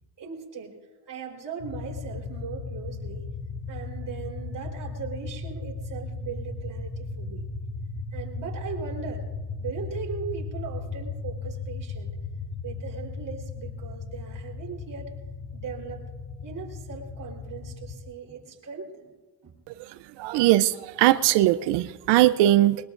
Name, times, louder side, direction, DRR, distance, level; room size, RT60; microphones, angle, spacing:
voice 1, 0.2-0.8 1.1-3.2 3.7-7.4 8.1-9.3 9.6-12.2 12.6-15.1 15.5-16.1 16.4-19.1 19.4-19.5, right 6 dB, 50° right, 0 dB, 4.0 m, -38 dB
sound 1, 1.6-18.0, left 4 dB, 70° left, 4.6 m, -36 dB
voice 2, 20.2-22.8, right 15 dB, 75° right, 14 dB, 0.6 m, -20 dB
22.0 x 20.5 x 2.6 m, 1.3 s
supercardioid pair, 70°, 42 cm